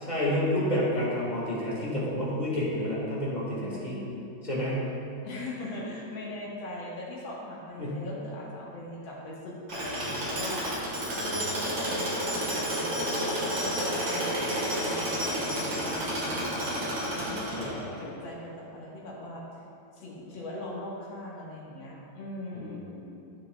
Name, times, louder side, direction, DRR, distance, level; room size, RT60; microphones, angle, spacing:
voice 1, 0.1-4.0 4.4-4.9 7.8-8.0 13.8-14.0 17.6-18.1 22.5-23.1, left 1 dB, 25° left, -7 dB, 1.6 m, -30 dB
voice 2, 3.5-4.2 5.2-16.6 17.1-17.6 18.0-19.4 19.9-22.9, left 1 dB, 75° left, -5 dB, 2.1 m, -40 dB
Tools, 9.7-18.0, equal, 70° right, 2.2 m, -30 dB
11.0 x 6.4 x 2.2 m, 2.6 s
omnidirectional pair, 2.1 m